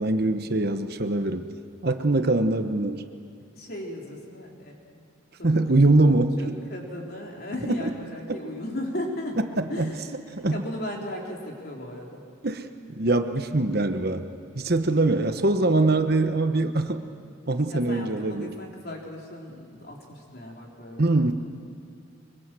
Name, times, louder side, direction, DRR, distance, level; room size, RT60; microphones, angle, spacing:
voice 1, 0.0-1.5 1.8-3.0 5.4-6.6 9.6-9.9 10.3-10.6 12.4-14.2 14.5-17.0 17.5-18.5 21.0-21.3, right 2 dB, 50° right, 8 dB, 1.0 m, -23 dB
voice 2, 3.6-5.0 5.4-5.6 6.4-9.4 9.7-12.2 15.2-15.3 17.7-21.2, left 1 dB, 50° left, -1 dB, 3.9 m, -36 dB
24.0 x 23.5 x 7.7 m, 2.4 s
head